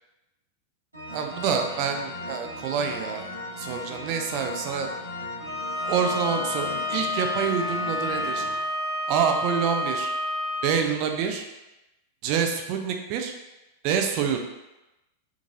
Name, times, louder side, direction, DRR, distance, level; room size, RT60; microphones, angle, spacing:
sound 1, 0.9-8.6, left 2 dB, 85° right, 1.0 m, -37 dB
voice 1, 1.1-3.3 3.6-4.9 5.8-8.5 9.1-10.1 10.6-11.4 12.2-13.3 13.8-14.4, right 7 dB, 45° right, 4 dB, 0.4 m, -27 dB
Bowed string instrument, 5.4-10.7, left 2 dB, 25° right, 1.2 m, -29 dB
3.5 x 3.1 x 2.6 m, 0.97 s
figure-of-eight pair, 90°, 0 cm